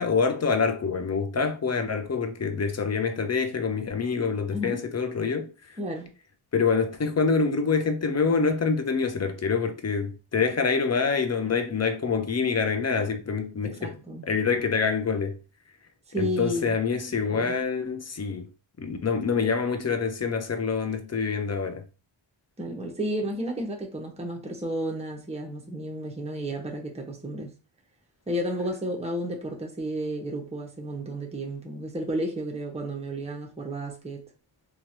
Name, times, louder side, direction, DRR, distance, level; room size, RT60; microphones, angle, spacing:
voice 1, 0.0-5.5 6.5-14.0 14.3-15.4 16.2-18.5 18.8-21.8, left 5 dB, 35° left, 0.5 m, -26 dB
voice 2, 4.5-4.8 5.8-6.1 13.6-14.3 16.1-16.8 17.3-17.5 22.6-27.5 28.3-34.2, equal, 15° right, 0.8 m, -32 dB
2.9 x 2.4 x 2.7 m
cardioid pair, 55°, 49 cm